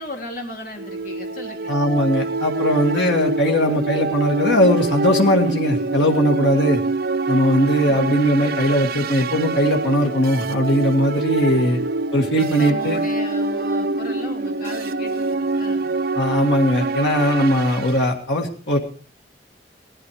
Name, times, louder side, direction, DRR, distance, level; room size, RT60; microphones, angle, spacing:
voice 1, 0.0-1.8 11.5-11.7 12.4-15.9, left 1 dB, 50° left, 1 dB, 3.5 m, -36 dB
sound 1, 0.8-18.0, right 3 dB, 55° right, 0.7 m, -25 dB
voice 2, 1.7-6.8 7.3-11.8 12.1-13.0 16.2-18.8, equal, 90° left, 1 dB, 1.8 m, -19 dB
17.5 x 12.0 x 4.7 m, 0.42 s
head